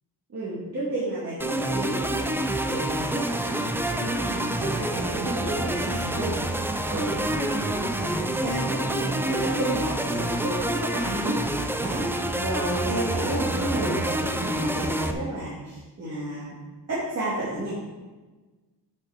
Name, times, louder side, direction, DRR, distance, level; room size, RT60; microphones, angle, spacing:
voice 1, 0.3-2.3 2.6-6.3 6.9-16.6 16.9-17.7, right 1 dB, 35° right, -11 dB, 2.7 m, -31 dB
sound 1, 1.4-15.1, right 1 dB, 5° right, 0.3 m, -27 dB
8.5 x 6.3 x 5.2 m, 1.3 s
wide cardioid pair, 160°, 42 cm